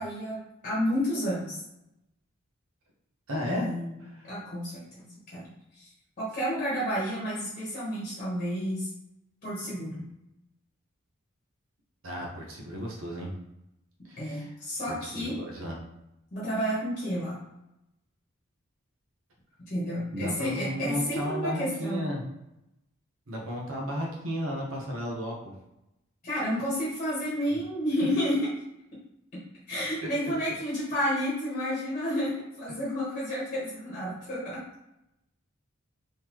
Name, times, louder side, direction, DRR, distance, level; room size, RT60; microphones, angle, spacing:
voice 1, 0.0-1.6 3.5-3.9 4.2-5.1 5.3-5.9 6.2-8.9 9.4-10.1 14.2-15.4 16.3-17.4 19.7-22.0 26.2-28.4 29.7-34.6, equal, 35° left, -7 dB, 1.1 m, -31 dB
voice 2, 3.3-3.7 4.0-4.3 12.0-13.3 14.0-14.5 14.9-15.8 20.1-22.2 23.3-25.4 27.5-27.6, equal, 70° right, -2 dB, 1.0 m, -34 dB
3.8 x 3.2 x 3.0 m, 0.88 s
head